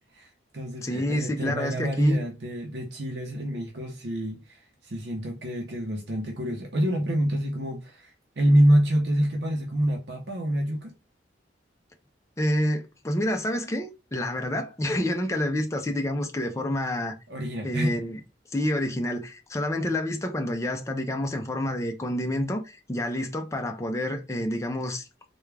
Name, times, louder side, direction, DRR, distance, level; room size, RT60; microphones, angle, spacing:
voice 1, 0.1-10.9 17.3-18.0, equal, 65° right, 0.7 m, -26 dB
voice 2, 0.8-2.2 12.4-17.1 17.6-18.2 18.5-25.1, left 1 dB, 15° left, 0.5 m, -28 dB
3.5 x 2.3 x 3.2 m
head